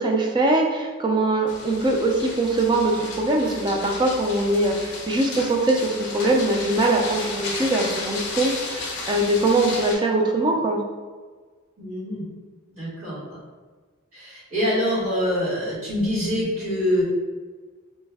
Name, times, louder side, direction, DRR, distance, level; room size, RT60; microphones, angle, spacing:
voice 1, 0.0-10.8, right 2 dB, 20° right, 0 dB, 0.3 m, -22 dB
sound 1, 1.5-10.0, left 3 dB, 55° left, 0.6 m, -33 dB
voice 2, 11.8-12.2 12.8-13.4 14.1-17.0, equal, 90° right, -7 dB, 1.5 m, -25 dB
3.2 x 2.0 x 3.4 m, 1.5 s
head